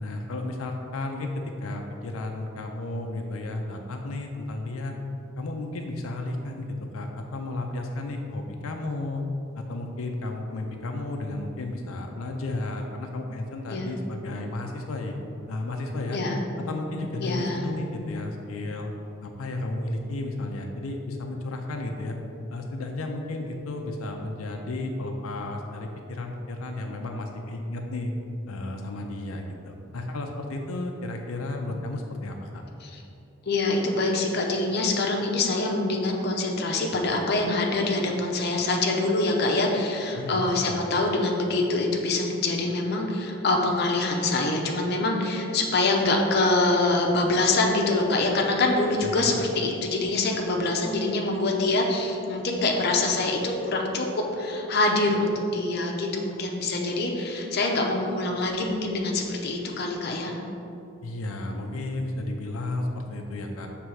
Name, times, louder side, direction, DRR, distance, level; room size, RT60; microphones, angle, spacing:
voice 1, 0.0-1.3 1.6-5.0 5.4-9.2 9.6-15.2 15.5-16.2 16.6-18.9 19.2-22.1 22.5-28.1 28.5-32.6 40.1-40.8 49.0-49.3 61.0-63.7, left 2 dB, 90° left, 3 dB, 0.5 m, -33 dB
voice 2, 17.2-17.6 32.8-33.0 33.5-54.1 54.3-60.4, left 2 dB, 50° left, 0 dB, 0.6 m, -25 dB
6.3 x 3.3 x 4.7 m, 2.7 s
head